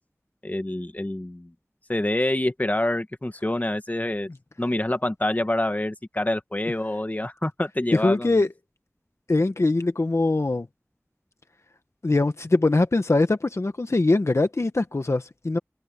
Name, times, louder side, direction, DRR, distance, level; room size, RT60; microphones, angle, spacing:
voice 1, 0.4-1.5 1.9-4.3 4.6-8.4, left 1 dB, 30° left, 1.7 m, -26 dB
voice 2, 7.9-8.5 9.3-10.7 12.0-15.6, left 2 dB, 65° left, 1.1 m, -22 dB
wide cardioid pair, 50°, 5 cm